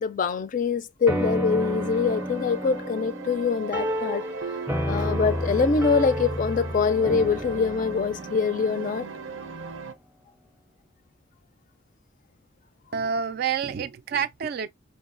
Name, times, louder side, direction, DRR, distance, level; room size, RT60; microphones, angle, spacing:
voice 1, 0.0-4.2 4.9-9.1, left 5 dB, 40° left, 0.3 m, -24 dB
sound 1, 1.1-9.8, equal, 10° right, 0.6 m, -31 dB
sound 2, 1.6-9.9, right 6 dB, 90° right, 0.6 m, -38 dB
voice 2, 12.9-14.7, right 7 dB, 50° right, 0.3 m, -28 dB
4.6 x 2.7 x 2.5 m
head